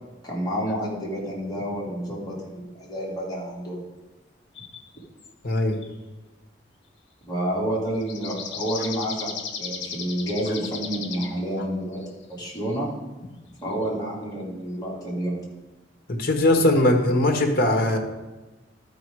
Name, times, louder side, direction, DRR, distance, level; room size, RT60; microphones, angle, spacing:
voice 1, 0.2-3.8 7.3-9.3 9.6-12.0 12.3-12.9 13.6-15.4, right 1 dB, 20° left, -6 dB, 3.0 m, -29 dB
sound 1, 4.6-4.9 5.2-5.3 5.7-5.9 8.0-11.4 11.9-12.0 12.3-12.8 13.8-13.9, left 6 dB, 80° left, 1.2 m, -36 dB
voice 2, 5.4-5.8 16.1-18.0, left 1 dB, 55° left, 3 dB, 1.4 m, -20 dB
12.5 x 5.1 x 4.8 m, 1.1 s
head